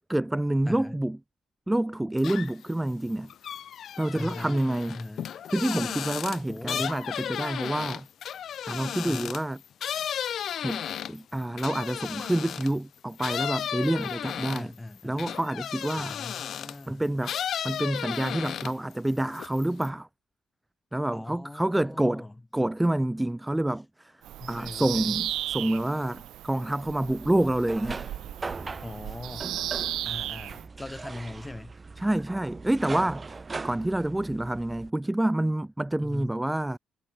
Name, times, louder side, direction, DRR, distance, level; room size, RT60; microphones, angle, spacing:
voice 1, 0.1-1.2 1.7-3.3 4.0-5.0 5.5-8.1 8.7-9.6 10.6-10.8 11.1-14.7 15.0-16.1 16.9-17.3 17.6-20.1 20.9-22.3 22.5-24.1 24.5-28.1 32.0-33.3 33.6-36.8, right 1 dB, 10° right, 0.5 m, -28 dB
voice 2, 0.7-1.0 2.4-2.5 4.1-4.6 4.9-5.3 6.5-6.9 9.0-9.3 14.5-15.3 16.0-17.0 21.1-22.4 24.4-25.2 28.8-29.5 30.0-31.7 36.0-36.4, left 2 dB, 15° left, 4.8 m, -40 dB
sound 1, 2.2-2.7 3.1-12.8 13.2-16.8 17.2-18.9 19.2-19.9, left 9 dB, 65° left, 1.0 m, -34 dB
Bird vocalization bird call bird song, 24.2-30.7, right 13 dB, 85° right, 0.3 m, -35 dB
sound 2, 27.2-34.9, right 4 dB, 30° right, 3.0 m, -40 dB
cardioid pair, 90°, 0 cm